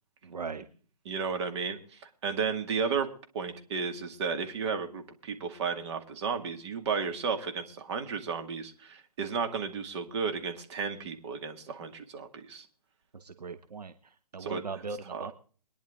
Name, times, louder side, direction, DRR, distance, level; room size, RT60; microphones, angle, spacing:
voice 1, 0.2-0.6 13.1-15.3, right 4 dB, 75° right, 9 dB, 1.1 m, -39 dB
voice 2, 1.1-3.1 3.3-12.7 14.4-14.6 15.1-15.3, right 5 dB, 45° right, 6 dB, 2.2 m, -33 dB
22.5 x 10.5 x 3.7 m, 0.42 s
figure-of-eight pair, 135°, 20 cm